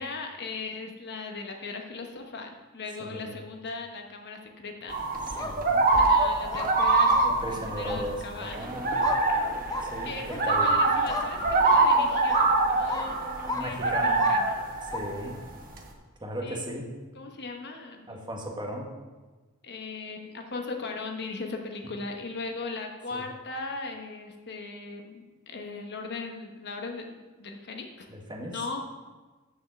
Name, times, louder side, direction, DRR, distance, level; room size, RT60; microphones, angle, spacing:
voice 1, 0.0-5.6 5.9-7.1 7.7-8.7 10.0-14.6 15.2-15.4 16.4-16.7 17.2-18.2 19.6-28.1 28.5-28.8, left 3 dB, 50° left, 3 dB, 1.0 m, -38 dB
voice 2, 3.0-3.4 5.4-5.8 7.2-9.1 9.8-10.7 13.5-14.2 14.9-15.3 16.2-16.9 18.1-18.9 23.1-23.2 28.1-28.6, equal, 20° right, 0 dB, 1.4 m, -36 dB
sound 1, 4.9-15.8, right 2 dB, 40° right, 1.3 m, -25 dB
sound 2, 5.2-5.5 5.9-6.1 6.5-6.7 7.1-7.3 7.9-8.0 9.0-9.2 9.7-9.9 10.3-10.4 11.1-11.3 11.7-11.9 12.3-12.5 12.9-13.1 13.5-13.6 14.2-14.4 14.9-15.0, left 3 dB, 15° left, 0.7 m, -33 dB
7.1 x 6.4 x 6.9 m, 1.3 s
head